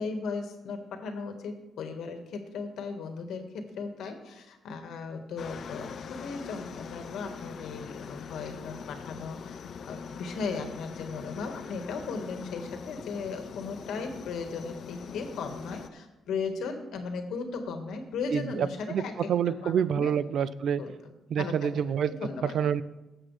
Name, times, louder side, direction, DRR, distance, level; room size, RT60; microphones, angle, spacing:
voice 1, 0.0-9.6 9.8-19.2 19.5-20.1 20.8-21.7 22.0-22.5, left 4 dB, 80° left, 5 dB, 1.5 m, -37 dB
Aircraft, 5.4-15.9, left 6 dB, 60° left, 0.5 m, -42 dB
voice 2, 19.3-20.8 21.3-22.1 22.5-22.8, right 8 dB, 65° right, 16 dB, 0.5 m, -27 dB
18.5 x 7.5 x 3.3 m, 1.0 s
cardioid pair, 110°, 0 cm